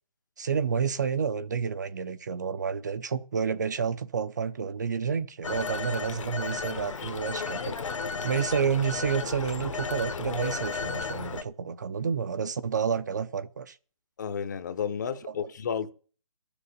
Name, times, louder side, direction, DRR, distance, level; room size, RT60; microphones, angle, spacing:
voice 1, 0.4-7.8 8.2-13.8, right 6 dB, 30° right, 0.6 m, -30 dB
Telephone, 5.4-11.4, left 4 dB, 60° left, 1.3 m, -34 dB
voice 2, 14.2-15.9, left 7 dB, 30° left, 0.8 m, -32 dB
12.5 x 6.9 x 8.5 m
hypercardioid pair, 165°, 18 cm